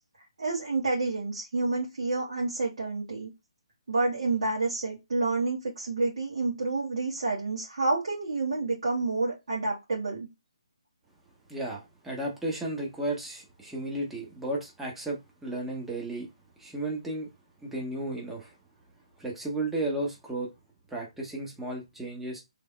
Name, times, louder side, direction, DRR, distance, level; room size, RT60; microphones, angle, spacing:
voice 1, 0.4-3.3 3.9-10.3, right 3 dB, 65° right, 1.9 m, -29 dB
voice 2, 11.5-16.3 16.6-17.3 17.6-18.5 19.2-20.5 20.9-22.4, right 1 dB, 5° right, 1.0 m, -34 dB
3.5 x 3.4 x 2.2 m
figure-of-eight pair, 150°, 3 cm